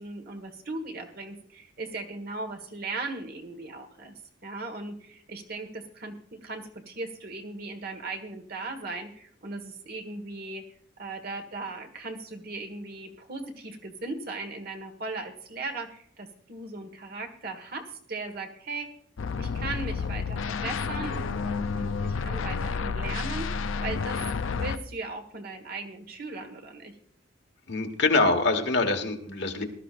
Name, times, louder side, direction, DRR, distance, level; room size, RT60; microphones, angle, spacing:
voice 1, 0.0-4.1 4.4-10.6 11.0-18.9 19.4-24.2 24.5-26.9, right 3 dB, 50° right, 5 dB, 1.5 m, -38 dB
sound 1, 19.2-24.8, left 5 dB, 80° left, 0.5 m, -30 dB
voice 2, 27.7-29.6, left 3 dB, 60° left, 5 dB, 1.4 m, -24 dB
19.0 x 12.5 x 2.5 m, 0.63 s
head